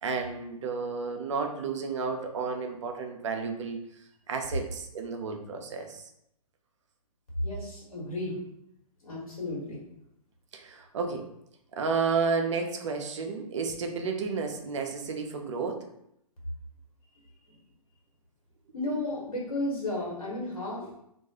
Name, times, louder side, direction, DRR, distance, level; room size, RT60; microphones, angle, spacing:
voice 1, 0.0-3.8 4.3-6.0 10.5-11.3 11.7-15.9, right 5 dB, 50° right, 4 dB, 0.5 m, -31 dB
voice 2, 7.4-8.4 9.0-9.8 17.4-17.6 18.7-20.9, left 1 dB, 65° left, -4 dB, 1.2 m, -33 dB
2.3 x 2.2 x 2.8 m, 0.76 s
figure-of-eight pair, 120°, 19 cm